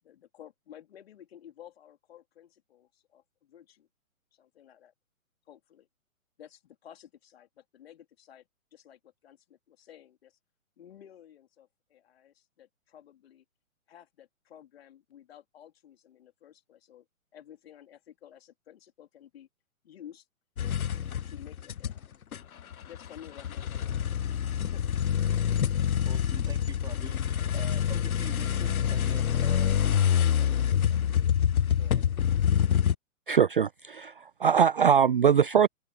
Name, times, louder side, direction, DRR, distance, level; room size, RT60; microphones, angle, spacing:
voice 1, 0.0-3.9 4.3-4.9 5.5-5.9 6.4-10.4 10.8-13.5 13.9-17.1 17.3-19.5 19.8-20.3 21.2-22.1 22.6-24.4 24.6-24.9, left 10 dB, 45° left, 3.7 m, -53 dB
sound 1, 20.6-22.0 22.3-33.0, left 9 dB, 80° left, 0.6 m, -26 dB
voice 2, 25.6-32.1, right 7 dB, 10° right, 3.8 m, -48 dB
voice 3, 33.3-35.7, right 7 dB, 40° right, 0.4 m, -22 dB
open air
figure-of-eight pair, 130°, 42 cm